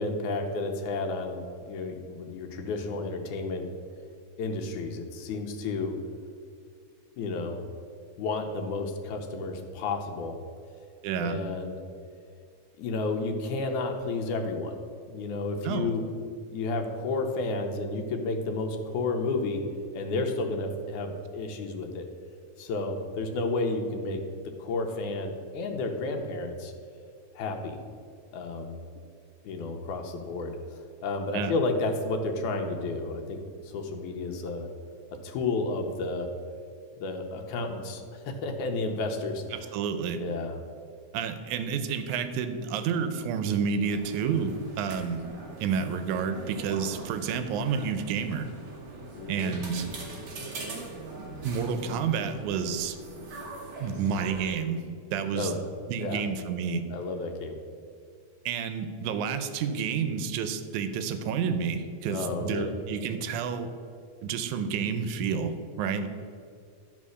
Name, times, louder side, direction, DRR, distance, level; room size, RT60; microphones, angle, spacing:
voice 1, 0.0-3.6 4.4-5.9 7.2-7.6 8.2-10.4 11.2-11.8 12.8-14.8 15.1-16.0 16.5-19.6 19.9-22.1 22.6-24.2 24.6-26.7 27.4-27.8 28.3-28.8 29.4-30.6 31.0-33.4 33.6-34.7 35.2-36.3 37.0-39.4 40.2-40.5 49.1-49.6 55.3-55.6 56.0-56.2 56.9-57.6 62.1-62.7, left 3 dB, 90° left, 4 dB, 2.3 m, -31 dB
voice 2, 11.0-11.4 15.6-15.9 31.3-31.5 39.5-40.2 41.1-45.2 45.6-48.5 49.3-49.9 51.4-53.0 53.8-54.8 55.1-55.6 55.9-56.8 58.5-63.7 64.2-66.1, right 6 dB, 85° right, 9 dB, 2.1 m, -30 dB
sound 1, 43.8-54.5, right 2 dB, 50° right, 1.3 m, -42 dB
11.5 x 4.1 x 6.3 m, 2.3 s
omnidirectional pair, 3.4 m